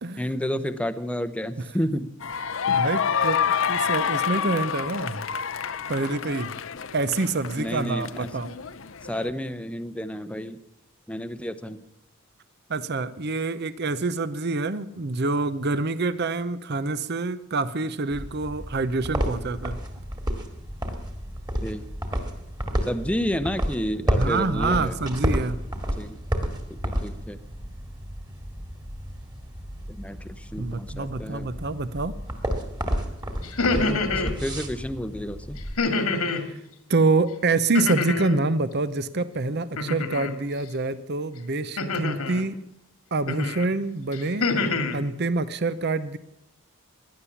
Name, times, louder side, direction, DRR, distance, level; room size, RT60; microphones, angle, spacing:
voice 1, 0.2-2.1 7.6-8.3 9.0-10.6 11.1-11.8 21.6-21.9 22.8-25.0 26.0-26.2 26.8-27.4 29.9-31.5 34.2-35.6, equal, 5° left, 11 dB, 0.7 m, -30 dB
sound 1, 2.2-9.3, left 7 dB, 60° left, 0.7 m, -28 dB
voice 2, 2.7-5.3 5.9-6.5 6.9-8.5 12.7-19.8 24.1-25.6 30.6-32.1 36.3-36.6 36.9-42.6 43.1-44.5 44.9-46.2, right 3 dB, 50° right, 14 dB, 0.7 m, -26 dB
sound 2, 18.1-35.7, equal, 20° right, 2.1 m, -31 dB
sound 3, 33.4-34.3 35.8-36.5 37.7-38.4 39.8-40.3 41.8-42.4 43.3-43.6 44.1-45.0, left 3 dB, 85° left, 2.1 m, -26 dB
17.0 x 11.5 x 7.1 m, 0.82 s
head